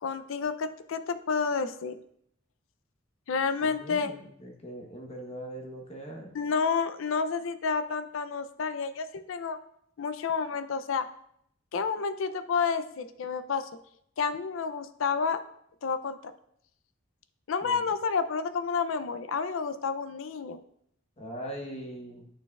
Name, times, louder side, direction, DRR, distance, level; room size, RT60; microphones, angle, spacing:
voice 1, 0.0-2.0 3.3-4.1 6.3-9.6 10.0-11.1 11.7-13.7 14.2-15.4 15.8-16.3 17.5-20.6, left 5 dB, 75° left, 11 dB, 0.4 m, -30 dB
voice 2, 3.6-6.4 17.6-17.8 21.2-22.3, right 1 dB, 30° left, 1 dB, 1.0 m, -41 dB
10.5 x 4.5 x 2.3 m, 0.72 s
head